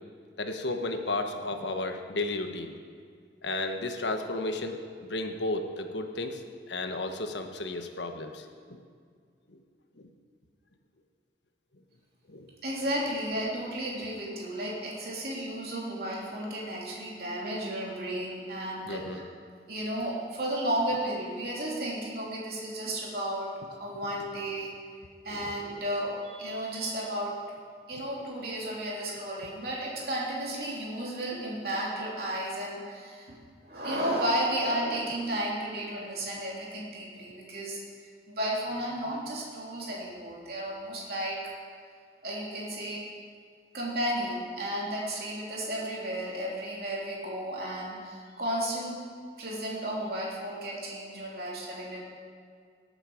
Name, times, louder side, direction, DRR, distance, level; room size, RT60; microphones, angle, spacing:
voice 1, 0.4-2.7 3.4-6.4 6.7-8.8 10.0-10.1 12.3-12.5 18.9-19.2 25.3-25.4, left 2 dB, 85° left, 6 dB, 1.2 m, -33 dB
voice 2, 12.6-19.2 19.7-24.7 25.2-27.4 27.9-33.3 33.6-37.8 38.3-41.4 42.2-43.0 43.7-49.0 49.4-52.0, right 1 dB, 60° right, -4 dB, 3.3 m, -33 dB
18.5 x 8.9 x 5.0 m, 2.1 s
head